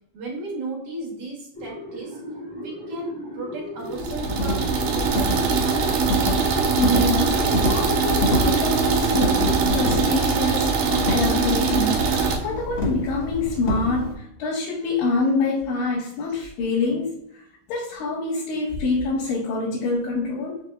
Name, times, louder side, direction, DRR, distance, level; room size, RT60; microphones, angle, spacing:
voice 1, 0.1-2.2 2.5-6.6, right 2 dB, 60° right, -3 dB, 1.7 m, -35 dB
sound 1, 1.5-10.1, equal, 25° right, 0.8 m, -33 dB
sound 2, 3.9-12.4, right 5 dB, 90° right, 1.5 m, -22 dB
sound 3, 4.0-14.1, equal, 50° left, 0.9 m, -28 dB
voice 2, 6.5-17.4 17.7-20.6, left 3 dB, 90° left, -5 dB, 2.6 m, -26 dB
5.7 x 3.4 x 2.3 m, 0.74 s
omnidirectional pair, 3.8 m